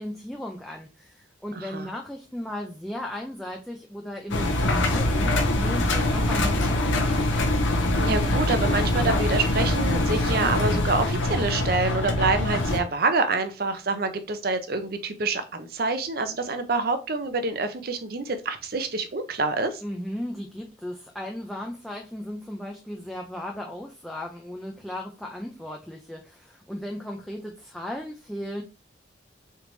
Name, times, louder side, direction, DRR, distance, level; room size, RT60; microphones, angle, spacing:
voice 1, 0.0-7.3 19.8-28.6, left 1 dB, ahead, 0 dB, 0.4 m, -36 dB
voice 2, 1.5-1.9 8.0-19.8, right 3 dB, 50° right, 8 dB, 0.6 m, -27 dB
Engine, 4.3-12.8, left 1 dB, 75° left, 0.7 m, -23 dB
3.9 x 3.3 x 3.1 m, 0.31 s
head